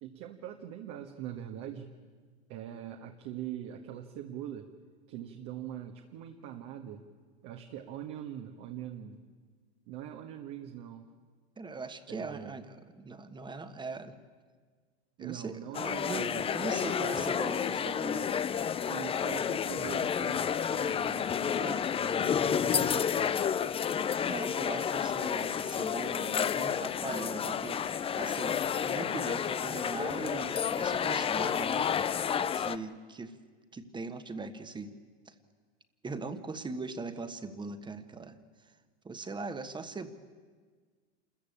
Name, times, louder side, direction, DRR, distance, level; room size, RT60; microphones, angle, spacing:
voice 1, 0.0-1.9 2.5-4.7 5.1-7.0 7.4-9.2 9.9-11.1 12.1-12.6 15.2-16.5 17.0-17.3 18.7-21.6 21.9-23.4, right 10 dB, 55° right, 4 dB, 1.6 m, -43 dB
voice 2, 11.6-14.2 15.2-18.3 21.6-21.9 24.1-31.9 32.5-33.4 33.7-34.9 35.3-35.4 36.0-38.4 39.0-40.1, right 3 dB, 15° right, 10 dB, 1.4 m, -40 dB
sound 1, 15.7-32.8, left 8 dB, 20° left, 0.6 m, -30 dB
27.0 x 14.5 x 8.6 m, 1.5 s
hypercardioid pair, 110°, 32 cm